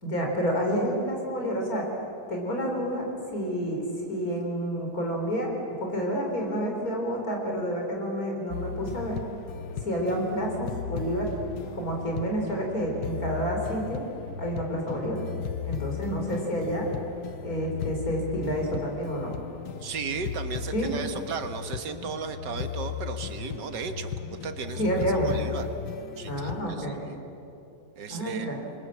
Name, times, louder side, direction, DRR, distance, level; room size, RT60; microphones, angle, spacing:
voice 1, 0.0-1.9 2.3-3.1 3.3-5.5 5.8-9.2 9.8-11.3 11.7-14.0 14.4-15.2 15.6-16.9 17.4-19.3 20.7-20.9 24.8-25.4 26.3-27.1 28.1-28.6, equal, 55° left, 1 dB, 4.7 m, -29 dB
sound 1, 8.5-26.6, left 7 dB, 80° left, 1.5 m, -36 dB
voice 2, 19.8-24.8 25.2-25.7 26.2-27.2 28.0-28.6, right 5 dB, 90° right, 8 dB, 2.0 m, -35 dB
27.5 x 22.5 x 7.4 m, 2.8 s
omnidirectional pair, 1.8 m